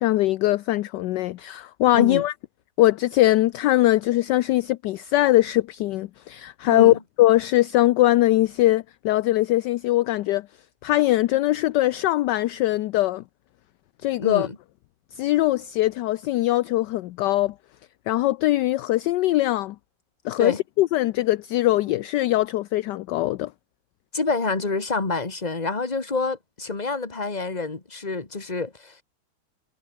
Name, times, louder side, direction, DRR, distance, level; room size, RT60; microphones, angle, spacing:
voice 1, 0.0-2.3 2.8-10.5 10.8-13.2 14.0-14.5 15.2-17.5 18.1-19.8 20.2-23.5, left 16 dB, 75° left, 1.1 m, -21 dB
voice 2, 1.9-2.2 6.6-7.0 14.2-14.6 20.4-20.6 24.1-29.0, left 3 dB, 20° left, 2.2 m, -27 dB
omnidirectional pair, 2.2 m